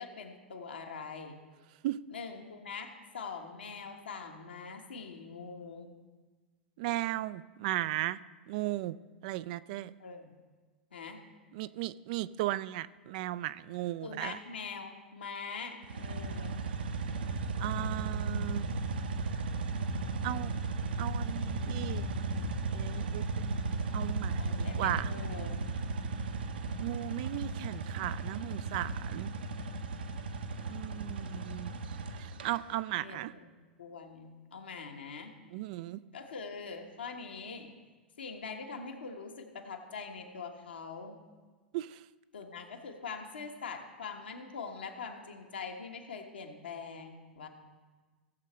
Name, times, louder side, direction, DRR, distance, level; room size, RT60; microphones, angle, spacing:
voice 1, 0.0-1.4 2.1-5.9 10.0-10.3 10.9-11.2 14.0-16.6 24.4-25.6 33.0-33.5 33.8-35.3 36.1-37.7 38.2-41.2 42.3-47.5, left 5 dB, 70° left, 3 dB, 1.3 m, -43 dB
voice 2, 6.8-8.2 8.5-9.0 9.2-9.9 11.5-14.4 17.6-18.7 20.2-20.5 21.0-22.2 22.7-23.6 23.9-25.1 26.8-29.3 30.7-31.7 32.1-33.3 35.5-36.0 41.7-42.0, right 15 dB, 50° right, 16 dB, 0.3 m, -36 dB
sound 1, 15.8-32.5, right 3 dB, 65° right, 0.9 m, -35 dB
17.0 x 7.4 x 3.2 m, 1.3 s
figure-of-eight pair, 95°, 6 cm